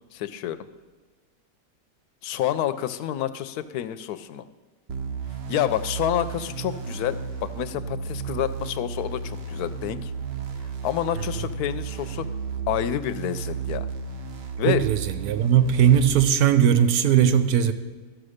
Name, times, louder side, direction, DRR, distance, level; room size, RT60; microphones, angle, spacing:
voice 1, 0.1-0.6 2.2-4.5 5.5-10.1 10.8-12.2 12.7-13.9 14.6-14.8, left 11 dB, 75° left, 13 dB, 1.1 m, -28 dB
sound 1, 4.9-16.1, right 6 dB, 50° right, 0.9 m, -33 dB
voice 2, 14.6-17.7, right 9 dB, 75° right, 10 dB, 1.2 m, -19 dB
13.0 x 6.4 x 6.4 m, 1.4 s
omnidirectional pair, 1.7 m